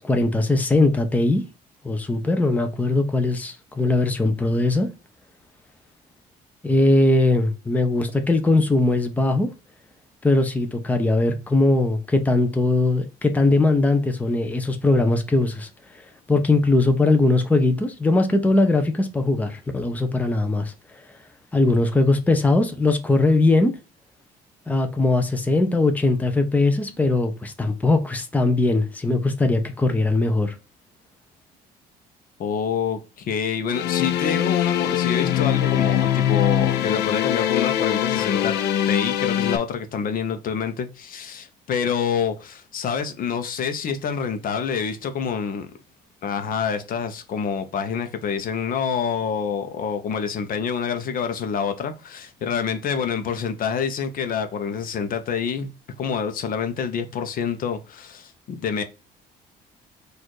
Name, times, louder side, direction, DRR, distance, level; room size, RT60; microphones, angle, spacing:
voice 1, 0.0-1.4 1.8-4.9 6.6-9.5 10.2-15.7 16.3-20.7 21.5-23.7 24.7-30.5, left 2 dB, 10° left, 0.7 m, -20 dB
voice 2, 32.4-38.6 38.9-45.7 46.2-55.7 56.0-58.8, left 6 dB, 55° left, 0.8 m, -27 dB
sound 1, 33.7-39.6, left 11 dB, 80° left, 0.6 m, -22 dB
4.2 x 2.6 x 4.6 m
cardioid pair, 110°, 17 cm